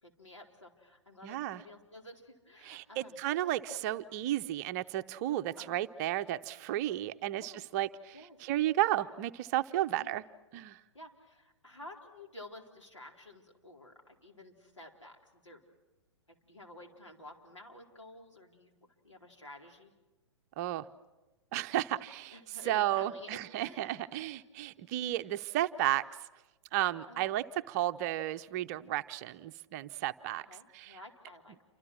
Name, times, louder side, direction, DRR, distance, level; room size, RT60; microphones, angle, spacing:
voice 1, 0.0-3.2 3.7-3.8 5.6-5.8 7.4-7.6 8.1-8.4 9.9-10.1 10.9-15.6 16.3-18.7 19.0-19.9 22.3-24.1 27.1-27.4 30.5-31.6, left 1 dB, 85° left, 0 dB, 4.3 m, -52 dB
voice 2, 1.2-1.6 2.6-10.2 10.5-10.8 20.6-20.8 21.5-22.4 22.6-26.0 26.7-30.4 30.7-31.0, right 14 dB, 35° right, 11 dB, 0.8 m, -33 dB
29.0 x 25.5 x 6.3 m, 1.1 s
figure-of-eight pair, 115°, 15 cm